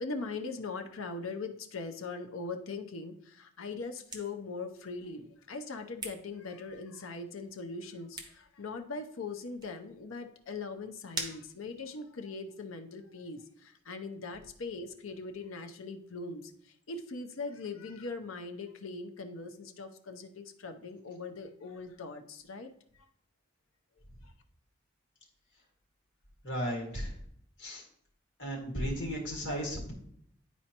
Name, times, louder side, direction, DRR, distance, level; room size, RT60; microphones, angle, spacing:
voice 1, 0.0-22.7 22.9-23.1 24.2-24.3, left 3 dB, 85° left, 6 dB, 0.7 m, -41 dB
sound 1, 3.7-12.3, right 3 dB, 20° right, 0.7 m, -48 dB
voice 2, 26.4-27.1 27.6-27.8 28.4-29.9, equal, 60° left, -1 dB, 1.9 m, -35 dB
10.0 x 4.3 x 2.9 m, 0.66 s
head